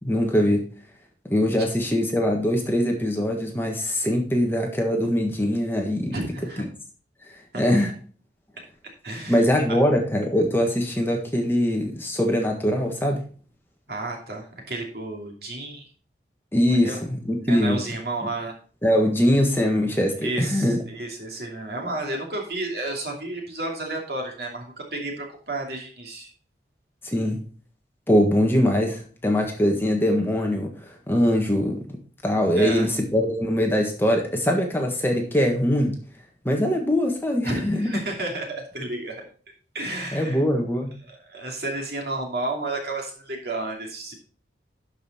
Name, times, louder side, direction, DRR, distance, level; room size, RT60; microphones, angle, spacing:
voice 1, 0.0-0.6 1.3-6.2 7.5-7.9 9.3-13.2 16.5-17.8 18.8-20.8 27.0-27.4 28.1-31.8 32.2-35.9 36.4-38.0 40.1-40.9, equal, 10° left, 1 dB, 1.5 m, -22 dB
voice 2, 6.1-6.6 7.5-7.8 9.0-9.5 13.9-15.9 16.7-17.0 17.5-18.5 20.2-26.3 32.6-32.9 37.4-39.2 39.7-40.4 41.0-44.1, right 2 dB, 60° right, 1 dB, 2.7 m, -32 dB
11.5 x 5.5 x 4.2 m, 0.41 s
head